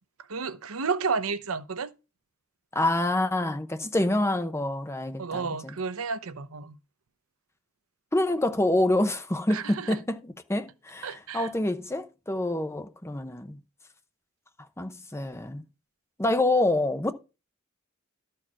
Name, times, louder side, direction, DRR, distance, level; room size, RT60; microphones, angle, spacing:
voice 1, 0.3-1.9 5.2-6.8 9.5-10.0 11.0-11.5, right 5 dB, 80° right, 0.8 m, -31 dB
voice 2, 2.7-5.7 8.1-13.6 14.8-15.6 16.2-17.1, left 1 dB, 15° left, 0.9 m, -27 dB
13.0 x 4.6 x 6.0 m
head